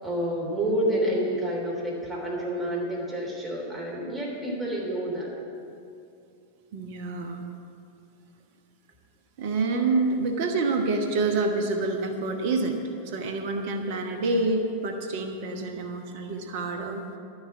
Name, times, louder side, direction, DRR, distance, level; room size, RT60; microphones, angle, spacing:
voice 1, 0.0-5.3, right 1 dB, 15° right, -3 dB, 3.2 m, -29 dB
voice 2, 6.7-7.4 9.4-12.8 13.0-17.0, right 3 dB, 50° right, 4 dB, 1.1 m, -27 dB
11.5 x 6.5 x 9.2 m, 2.6 s
figure-of-eight pair, 90°, 0 cm